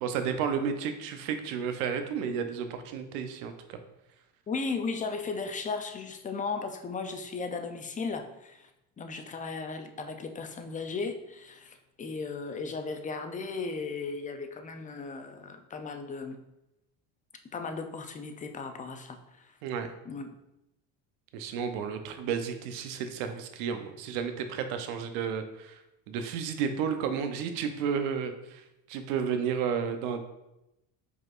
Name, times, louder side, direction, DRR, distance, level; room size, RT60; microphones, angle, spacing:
voice 1, 0.0-3.8 19.6-19.9 21.3-25.8 26.1-30.2, right 7 dB, 80° right, 8 dB, 0.7 m, -32 dB
voice 2, 4.5-8.7 9.0-16.4 17.5-19.5 20.1-20.4, left 4 dB, 20° left, 6 dB, 0.4 m, -36 dB
4.9 x 4.1 x 2.4 m, 0.90 s
supercardioid pair, 90°, 45 cm